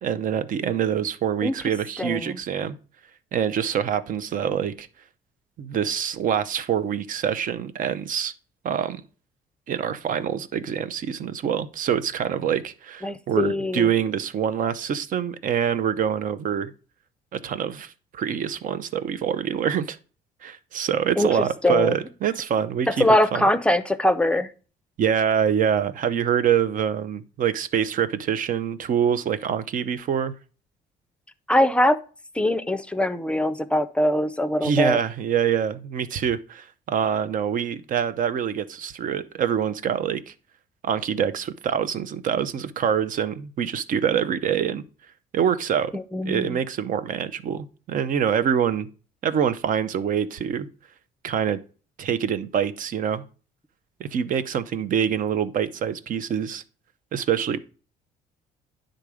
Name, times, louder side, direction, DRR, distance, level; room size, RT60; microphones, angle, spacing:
voice 1, 0.0-2.8 3.3-4.9 5.6-8.3 8.6-9.0 9.7-16.7 17.3-20.0 20.4-23.5 25.0-30.3 34.6-40.3 40.8-44.8 45.3-45.9 46.2-48.9 49.2-50.7 51.2-51.6 52.0-53.2 54.0-56.6 57.1-57.6, right 8 dB, 50° right, 0.7 m, -25 dB
voice 2, 2.0-2.3 13.0-13.9 21.2-21.3 21.6-22.0 23.0-24.5 31.5-32.0 32.4-35.0 45.9-46.6, left 1 dB, 5° left, 0.6 m, -22 dB
9.9 x 3.9 x 4.9 m
cardioid pair, 110°, 17 cm